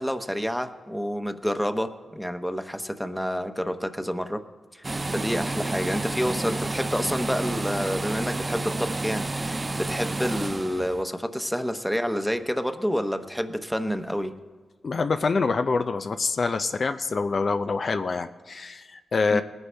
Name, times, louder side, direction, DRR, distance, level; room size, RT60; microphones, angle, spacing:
voice 1, 0.0-4.4 4.7-4.8 5.1-14.3 19.3-19.4, equal, 5° left, 8 dB, 0.9 m, -28 dB
sound 1, 4.8-11.0, right 2 dB, 30° right, 0.3 m, -30 dB
voice 2, 14.8-19.4, left 4 dB, 55° left, 8 dB, 0.4 m, -26 dB
19.5 x 9.6 x 3.4 m, 1.3 s
cardioid pair, 60°, 0 cm